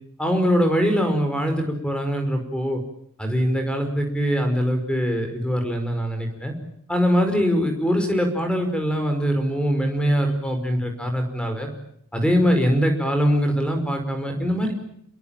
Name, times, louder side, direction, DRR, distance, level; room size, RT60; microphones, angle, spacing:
voice 1, 0.2-2.8 3.2-6.5 6.9-11.7 12.1-14.7, equal, 5° left, 5 dB, 5.1 m, -22 dB
29.0 x 21.5 x 9.0 m, 0.70 s
head